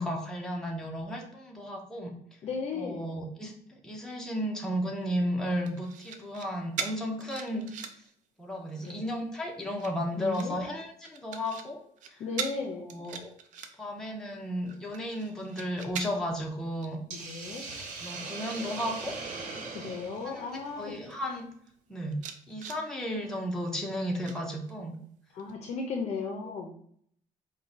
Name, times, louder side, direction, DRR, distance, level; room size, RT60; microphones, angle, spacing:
voice 1, 0.0-2.1 2.7-7.7 8.4-11.8 12.9-13.3 13.8-17.0 18.0-19.1 20.2-21.5 21.9-22.2 22.5-25.0, equal, 5° left, 0 dB, 0.6 m, -34 dB
voice 2, 2.4-3.1 8.8-9.0 10.2-10.6 12.2-12.9 17.1-17.6 19.7-20.9 25.3-26.7, left 4 dB, 55° left, 3 dB, 0.5 m, -35 dB
sound 1, 5.7-6.5 6.8-8.1 8.5-9.0 9.7-10.5 11.1-11.7 12.0-12.1 12.4-12.6 12.9-14.0 14.4-16.4 16.8-17.0 17.3-18.9 19.2-19.6 20.2-20.3 20.5-21.2 21.7-21.8 22.1-22.8 24.3-25.0 25.4-25.5, right 7 dB, 75° right, 0.5 m, -41 dB
Hiss, 17.1-21.4, right 3 dB, 90° right, 1.0 m, -40 dB
4.5 x 2.2 x 3.9 m, 0.64 s
cardioid pair, 170°, 13 cm